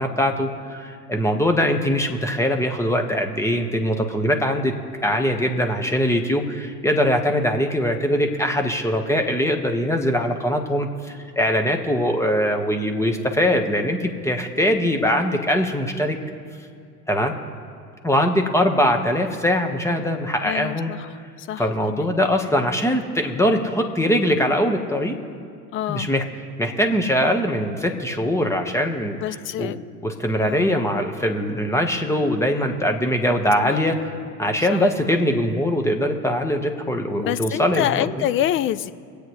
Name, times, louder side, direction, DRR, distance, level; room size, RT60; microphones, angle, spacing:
voice 1, 0.0-4.7 5.0-16.2 17.1-17.3 18.0-20.9 21.6-25.2 25.9-26.2 26.6-29.7 30.0-34.1 34.4-38.3, equal, 5° left, 4 dB, 1.4 m, -22 dB
voice 2, 20.4-21.1 21.4-22.1 25.7-26.1 29.1-29.8 30.4-30.8 33.6-33.8 34.7-34.8 37.1-38.9, left 12 dB, 25° left, 14 dB, 0.4 m, -27 dB
25.0 x 8.5 x 3.2 m, 2.3 s
hypercardioid pair, 80°, 48 cm